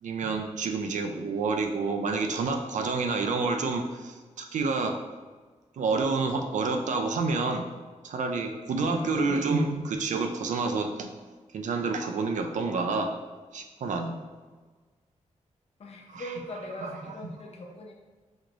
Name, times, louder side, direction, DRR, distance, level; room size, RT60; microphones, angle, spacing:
voice 1, 0.0-4.9 5.8-7.6 8.0-11.1 11.5-13.1 13.5-14.2 16.1-16.3 16.8-17.1, right 4 dB, 80° right, 5 dB, 0.5 m, -28 dB
voice 2, 8.8-9.5 15.8-17.9, left 1 dB, 55° left, 0 dB, 0.7 m, -41 dB
6.3 x 3.0 x 2.5 m, 1.4 s
wide cardioid pair, 125°, 13 cm